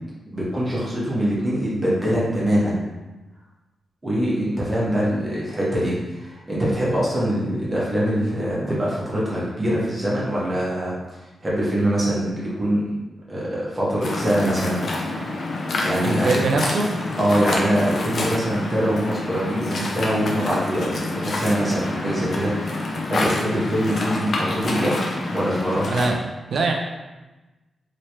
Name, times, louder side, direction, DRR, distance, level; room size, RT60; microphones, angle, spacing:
voice 1, 0.3-2.8 4.0-10.9 11.4-12.8 13.3-14.8 15.8-16.4 17.2-22.8 23.1-25.0 25.3-25.9, equal, 25° right, -7 dB, 1.2 m, -23 dB
Waves surf, 14.0-26.1, left 2 dB, 60° left, 0.6 m, -27 dB
voice 2, 16.0-17.0 25.9-26.2 26.5-26.7, right 3 dB, 70° right, 2 dB, 0.5 m, -22 dB
3.1 x 3.0 x 3.0 m, 1.1 s
cardioid pair, 95°, 0 cm